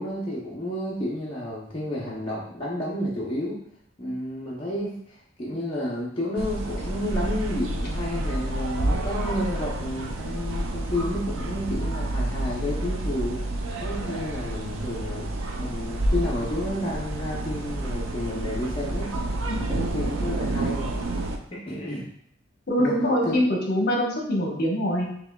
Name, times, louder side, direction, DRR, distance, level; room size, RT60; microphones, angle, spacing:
voice 1, 0.0-3.6 4.0-13.4 13.8-15.3 15.6-19.1 19.5-20.9 21.5-22.1 22.8-22.9 23.2-23.3, left 1 dB, 25° left, -6 dB, 0.6 m, -31 dB
sound 1, 6.4-21.4, right 1 dB, 80° right, 0.5 m, -29 dB
voice 2, 22.7-25.1, equal, 55° left, -1 dB, 1.0 m, -24 dB
5.8 x 3.0 x 2.2 m, 0.70 s
head